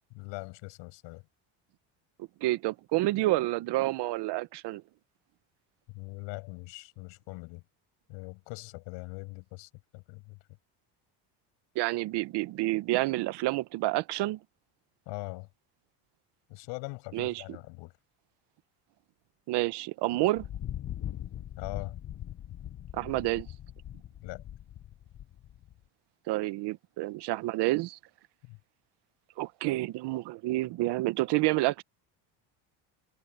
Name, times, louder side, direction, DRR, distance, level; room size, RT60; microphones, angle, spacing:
voice 1, 0.1-1.3 5.9-7.6 8.1-10.4 15.1-15.5 16.5-17.9 21.6-22.0 24.2-24.4 28.4-28.6, left 26 dB, 75° left, 7.5 m, -41 dB
voice 2, 2.4-4.8 11.7-14.4 17.1-17.3 19.5-20.5 22.9-23.5 26.3-28.0 29.4-31.8, right 18 dB, 65° right, 1.3 m, -29 dB
Thunder, 20.4-25.8, left 11 dB, 35° left, 1.3 m, -41 dB
supercardioid pair, 105°, 45 cm